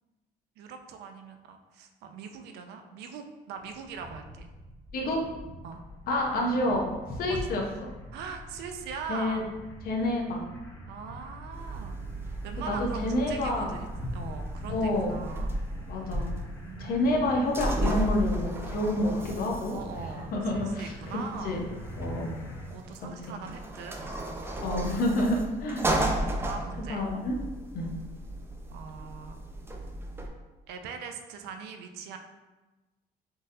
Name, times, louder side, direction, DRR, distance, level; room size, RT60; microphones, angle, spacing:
voice 1, 0.6-4.5 5.6-5.8 7.3-7.6 8.1-9.5 10.9-13.9 14.1-15.6 16.6-17.1 19.7-21.7 22.7-24.0 26.4-27.0 28.7-29.4 30.7-32.2, right 5 dB, 80° right, 6 dB, 0.4 m, -41 dB
sound 1, 3.6-22.7, equal, 15° left, 0.7 m, -43 dB
voice 2, 6.1-6.9 7.2-7.6 9.1-9.4 9.8-10.5 12.7-13.7 14.7-15.2 15.9-16.3 16.8-19.8 20.2-20.9 21.4-21.6 22.0-22.3 24.6-25.9 26.9-27.4 27.7-27.9, left 1 dB, 60° left, 0 dB, 0.7 m, -28 dB
sound 2, 11.5-30.3, right 1 dB, 15° right, 0.4 m, -35 dB
3.7 x 2.5 x 2.6 m, 1.2 s
cardioid pair, 110°, 17 cm